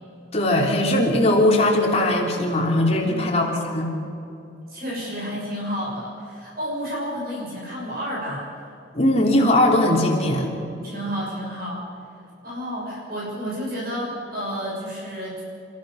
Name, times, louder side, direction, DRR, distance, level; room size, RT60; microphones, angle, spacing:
voice 1, 0.3-3.9 8.9-10.5, left 1 dB, 35° left, 0 dB, 3.4 m, -19 dB
voice 2, 3.0-3.4 4.7-8.5 10.8-11.8 12.4-15.4, equal, 50° right, -5 dB, 6.4 m, -31 dB
29.5 x 15.0 x 6.5 m, 2.8 s
head